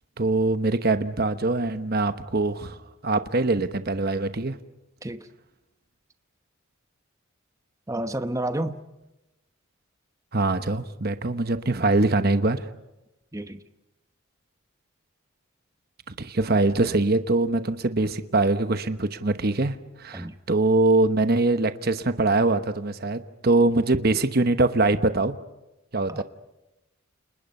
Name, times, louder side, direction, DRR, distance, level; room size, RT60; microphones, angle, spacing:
voice 1, 0.2-2.8 3.0-4.6 10.3-12.7 16.1-25.4 25.9-26.2, right 2 dB, 45° right, 1.0 m, -23 dB
voice 2, 7.9-8.8 13.3-13.6 20.1-20.4 26.1-26.2, right 1 dB, 15° right, 1.0 m, -30 dB
30.0 x 28.0 x 5.5 m
head